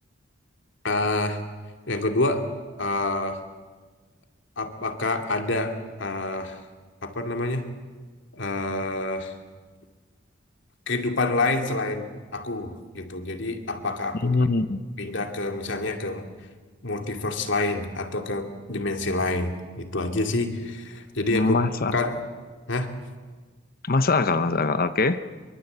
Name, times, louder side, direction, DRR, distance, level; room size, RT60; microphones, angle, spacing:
voice 1, 0.8-1.4 1.9-2.5 2.8-3.4 4.6-6.6 7.0-7.7 8.3-9.3 10.9-14.4 15.0-16.3 16.8-21.6 21.9-22.2 22.7-22.9, left 2 dB, 65° left, 5 dB, 2.7 m, -27 dB
voice 2, 14.2-14.8 21.3-21.9 23.8-25.2, left 3 dB, 50° left, 11 dB, 0.9 m, -22 dB
25.0 x 23.5 x 8.2 m, 1.4 s
head